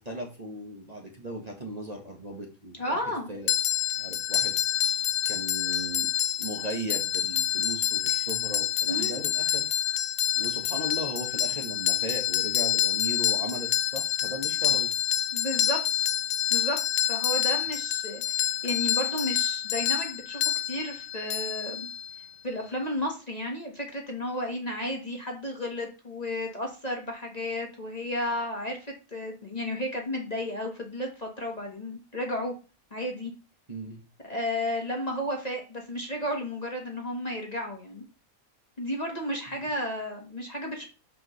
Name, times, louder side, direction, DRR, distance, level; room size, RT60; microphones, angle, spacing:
voice 1, 0.0-3.0 3.3-3.5 4.0-4.6 5.3-6.1 6.4-9.7 10.3-14.9 33.7-34.0, right 1 dB, 30° right, 1 dB, 1.4 m, -37 dB
voice 2, 2.8-3.3 8.9-9.2 15.3-15.8 16.5-21.9 22.4-32.5 32.9-33.3 34.2-38.0 38.8-40.8, left 1 dB, 30° left, 1 dB, 1.5 m, -33 dB
sound 1, 3.5-22.3, left 12 dB, 85° left, 1.1 m, -27 dB
12.0 x 5.0 x 3.2 m, 0.33 s
omnidirectional pair, 1.5 m